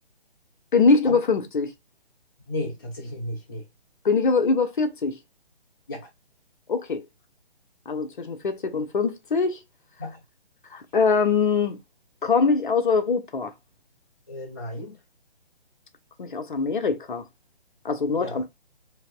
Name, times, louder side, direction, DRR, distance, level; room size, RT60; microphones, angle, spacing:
voice 1, 0.7-1.7 4.0-5.2 6.7-7.0 7.9-9.6 10.7-11.8 12.2-13.5 16.2-17.2 17.8-18.5, left 4 dB, 50° left, 0.9 m, -23 dB
voice 2, 2.5-3.6 5.9-6.1 10.0-10.2 14.3-15.0 18.2-18.4, left 1 dB, 20° left, 0.5 m, -34 dB
4.5 x 2.8 x 2.4 m
figure-of-eight pair, 145°, 32 cm